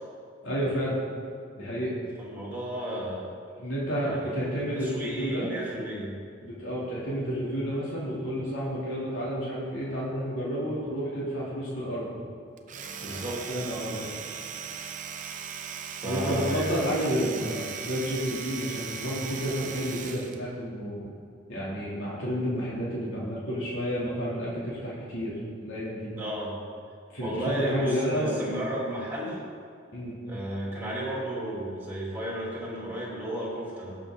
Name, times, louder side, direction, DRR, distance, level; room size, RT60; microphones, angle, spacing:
voice 1, 0.4-1.0 1.6-2.0 3.6-5.5 6.4-12.2 13.0-14.0 16.0-21.1 21.5-25.3 25.6-26.1 27.1-28.5 29.9-30.2, equal, 85° left, -7 dB, 2.7 m, -30 dB
voice 2, 2.2-3.3 4.0-4.3 4.7-6.2 13.0-13.7 15.9-16.7 26.1-26.6 27.2-29.4 30.2-34.0, right 1 dB, 10° right, -5 dB, 2.8 m, -33 dB
Domestic sounds home sounds, 12.6-20.4, right 7 dB, 40° right, 0.7 m, -38 dB
17.5 x 6.6 x 3.8 m, 2.4 s
head